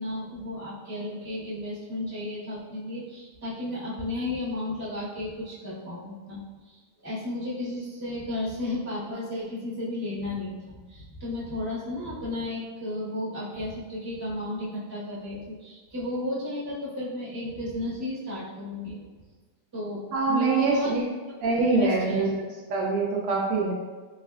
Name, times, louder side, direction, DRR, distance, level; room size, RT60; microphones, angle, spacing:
voice 1, 0.0-19.0 19.7-20.0 20.3-20.9 21.3-21.4 21.7-22.3, left 2 dB, 15° right, -9 dB, 1.2 m, -33 dB
voice 2, 20.1-21.0 21.4-22.3 22.7-23.7, right 4 dB, 80° right, -2 dB, 1.2 m, -24 dB
4.2 x 3.2 x 2.4 m, 1.3 s
omnidirectional pair, 2.0 m